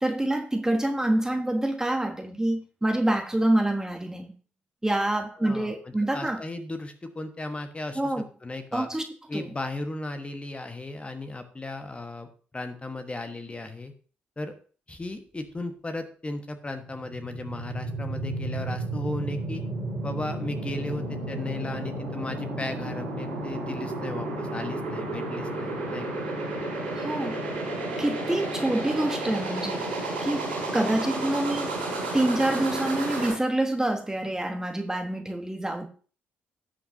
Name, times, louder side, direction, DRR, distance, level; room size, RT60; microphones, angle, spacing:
voice 1, 0.0-4.3 4.8-6.4 7.9-8.2 8.7-9.0 9.3-9.5 27.0-27.4 28.0-29.9 30.2-31.8 32.1-35.9, right 1 dB, 10° right, 1.2 m, -26 dB
voice 2, 5.3-8.1 8.4-8.9 9.3-12.3 12.5-13.9 14.4-14.5 14.9-19.6 20.0-26.2, left 2 dB, 20° left, 1.3 m, -35 dB
sound 1, 16.8-33.3, right 2 dB, 80° right, 3.8 m, -32 dB
18.0 x 6.0 x 2.7 m
figure-of-eight pair, 40°, 5 cm